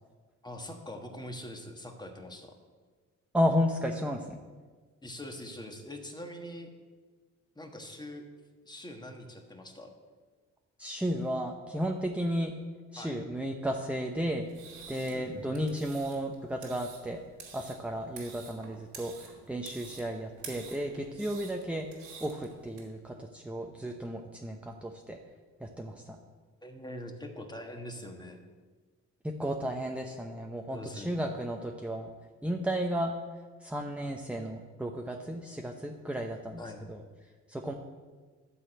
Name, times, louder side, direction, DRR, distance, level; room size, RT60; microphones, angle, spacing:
voice 1, 0.4-2.6 5.0-6.7 7.5-8.3 8.6-9.9 13.0-13.2 15.1-15.4 26.6-28.4 30.7-31.3 36.6-36.8, left 1 dB, 15° left, 3 dB, 1.5 m, -43 dB
voice 2, 3.3-4.4 10.8-12.6 12.9-14.5 14.9-17.2 17.5-21.9 22.2-25.2 25.6-26.2 29.2-32.1 32.4-33.1 33.6-36.6 36.9-37.0 37.5-37.7, equal, 5° right, 2 dB, 0.8 m, -33 dB
sound 1, 14.4-22.8, right 6 dB, 90° right, 2.6 m, -49 dB
12.0 x 4.1 x 7.8 m, 1.4 s
cardioid pair, 90°, 30 cm